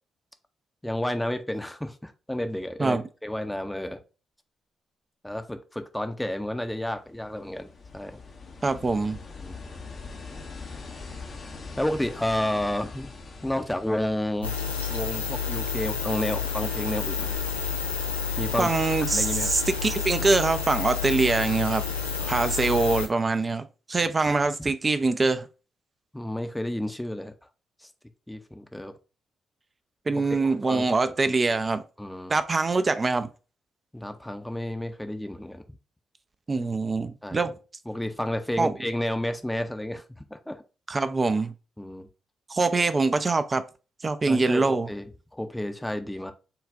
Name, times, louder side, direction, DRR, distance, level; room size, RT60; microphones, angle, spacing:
voice 1, 0.8-4.0 5.2-8.2 9.4-9.6 11.8-13.1 13.4-14.5 14.9-17.4 18.4-18.7 19.1-19.5 22.2-22.5 24.6-24.7 26.1-27.3 27.8-27.9 28.3-29.0 30.7-31.4 32.0-32.4 33.9-35.6 37.2-37.5 37.9-40.6 41.8-42.1 44.3-46.3, left 1 dB, 10° left, 0.7 m, -31 dB
sound 1, 6.7-15.2 17.3-17.4, left 4 dB, 45° left, 0.8 m, -43 dB
voice 2, 8.6-9.2 18.6-21.8 22.3-25.5 30.1-31.8 32.3-33.3 36.5-37.5 38.6-38.7 40.9-41.5 42.5-43.6 44.0-44.9, right 3 dB, 30° right, 0.5 m, -24 dB
sound 2, 14.4-23.1, left 6 dB, 90° left, 0.5 m, -30 dB
6.9 x 2.4 x 2.5 m
figure-of-eight pair, 40°, 0 cm